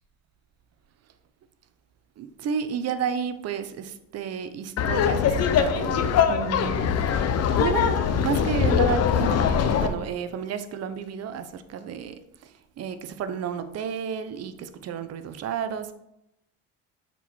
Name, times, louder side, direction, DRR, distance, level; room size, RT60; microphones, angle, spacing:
voice 1, 2.2-7.0 7.6-12.5 12.8-15.9, right 7 dB, 50° right, 0.7 m, -31 dB
Laughter, 4.8-9.9, left 7 dB, 50° left, 0.7 m, -22 dB
7.0 x 4.6 x 4.2 m
cardioid pair, 110°, 32 cm